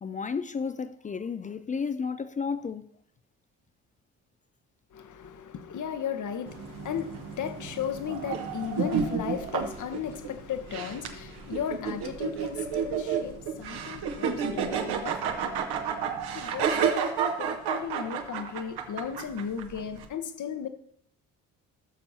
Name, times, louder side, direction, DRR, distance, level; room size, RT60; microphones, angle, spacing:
voice 1, 0.0-2.9, left 5 dB, 20° left, 0.3 m, -32 dB
voice 2, 4.9-15.7 16.3-17.0 17.4-20.7, left 8 dB, 45° left, 1.0 m, -36 dB
sound 1, 6.5-20.1, right 6 dB, 60° right, 1.1 m, -31 dB
sound 2, 8.1-9.8 10.1-10.2 12.7-13.4 13.8-14.1 15.7-17.1, right 9 dB, 85° right, 0.7 m, -40 dB
15.5 x 6.7 x 2.8 m
hypercardioid pair, 45°, 44 cm